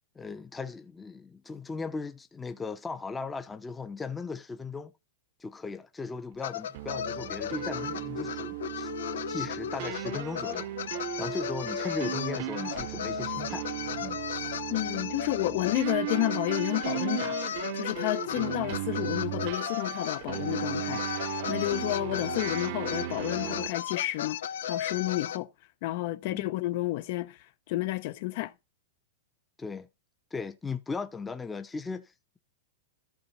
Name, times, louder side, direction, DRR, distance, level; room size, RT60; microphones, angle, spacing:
voice 1, 0.1-4.9 5.4-8.9 9.3-10.7 11.2-13.6 14.0-14.2 26.2-26.5 29.6-29.9 30.3-32.4, left 4 dB, 10° left, 0.8 m, -37 dB
sound 1, 6.4-25.4, left 9 dB, 80° left, 0.9 m, -35 dB
sound 2, 6.7-23.7, right 16 dB, 50° right, 0.8 m, -36 dB
voice 2, 14.7-17.4 17.7-24.4 24.7-25.5 25.8-27.4 27.7-28.5, left 18 dB, 50° left, 0.9 m, -31 dB
14.0 x 4.8 x 4.3 m
supercardioid pair, 155°, 0 cm